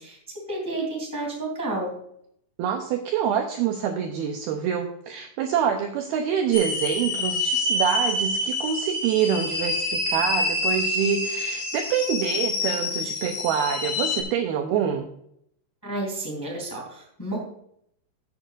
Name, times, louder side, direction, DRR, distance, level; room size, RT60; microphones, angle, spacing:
voice 1, 0.0-1.9 15.8-17.4, right 2 dB, 5° left, -1 dB, 1.8 m, -31 dB
voice 2, 2.6-15.1, right 8 dB, 85° right, 4 dB, 2.2 m, -26 dB
sound 1, 6.5-14.2, left 2 dB, 50° left, 2.3 m, -27 dB
14.5 x 8.4 x 2.5 m, 0.72 s
omnidirectional pair, 5.4 m